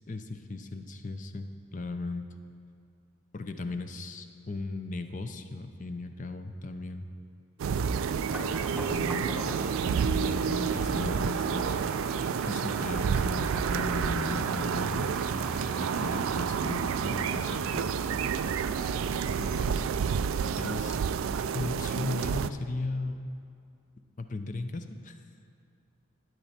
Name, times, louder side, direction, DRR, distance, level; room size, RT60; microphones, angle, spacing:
voice 1, 0.1-2.2 3.3-7.1 8.0-8.1 8.7-11.9 12.4-15.1 15.8-18.0 19.3-19.9 20.6-21.0 21.5-23.2 24.2-25.2, left 3 dB, 35° left, 8 dB, 0.5 m, -37 dB
sound 1, 7.6-22.5, right 7 dB, 75° right, 0.3 m, -29 dB
sound 2, 8.3-19.7, equal, 5° right, 0.8 m, -42 dB
12.0 x 9.3 x 4.3 m, 2.4 s
head